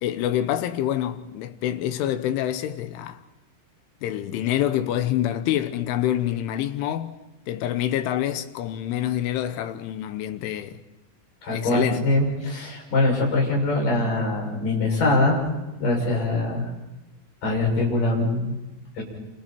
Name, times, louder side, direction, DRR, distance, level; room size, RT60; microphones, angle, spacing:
voice 1, 0.0-3.2 4.0-7.2 7.5-10.8 11.5-12.1, left 12 dB, 80° left, 3.3 m, -26 dB
voice 2, 11.4-15.5 15.8-16.7 17.4-18.5 18.9-19.0, left 2 dB, 40° left, 8.3 m, -23 dB
29.0 x 28.5 x 4.5 m
omnidirectional pair, 5.8 m